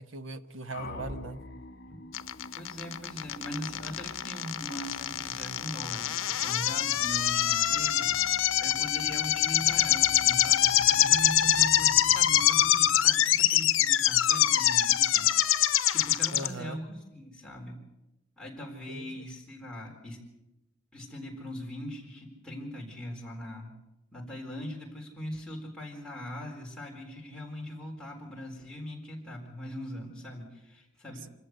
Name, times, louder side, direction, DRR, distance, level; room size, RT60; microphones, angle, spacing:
voice 1, 0.0-1.4 16.3-16.8 18.9-19.2, right 2 dB, 80° right, 10 dB, 1.2 m, -39 dB
sound 1, 0.7-13.6, left 1 dB, 50° left, 2.4 m, -48 dB
sound 2, 2.1-16.5, left 12 dB, 85° left, 0.8 m, -24 dB
voice 2, 2.6-8.1 8.6-17.8 18.4-20.2 20.9-23.8 24.1-31.3, equal, 5° left, -2 dB, 4.0 m, -41 dB
25.5 x 14.5 x 8.0 m, 0.95 s
head